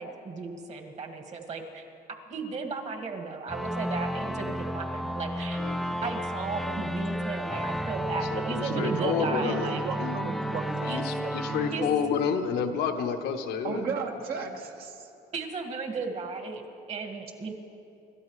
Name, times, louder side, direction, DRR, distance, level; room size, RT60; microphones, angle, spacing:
voice 1, 0.0-1.8 2.3-5.6 6.0-9.8 10.9-11.0 11.7-11.9 15.3-17.5, right 4 dB, 40° right, 4 dB, 2.0 m, -35 dB
sound 1, 3.5-12.8, equal, ahead, 0.4 m, -32 dB
voice 2, 5.6-6.0 8.3-10.2 10.8-13.8, left 7 dB, 75° left, 5 dB, 1.1 m, -30 dB
voice 3, 8.7-11.9 13.6-15.1, right 5 dB, 65° right, 2 dB, 1.7 m, -35 dB
27.0 x 13.0 x 3.2 m, 2.7 s
cardioid pair, 110°, 17 cm